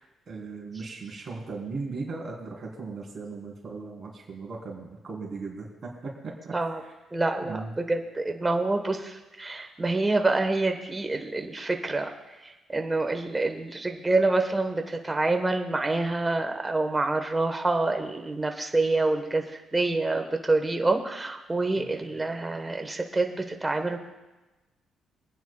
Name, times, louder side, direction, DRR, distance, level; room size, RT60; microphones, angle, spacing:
voice 1, 0.0-7.0 7.4-7.7 21.8-21.9, right 4 dB, 45° right, -2 dB, 3.6 m, -38 dB
voice 2, 7.1-12.1 12.4-24.0, right 2 dB, 20° right, 5 dB, 1.3 m, -27 dB
26.5 x 9.5 x 2.4 m, 1.1 s
cardioid pair, 90°, 0 cm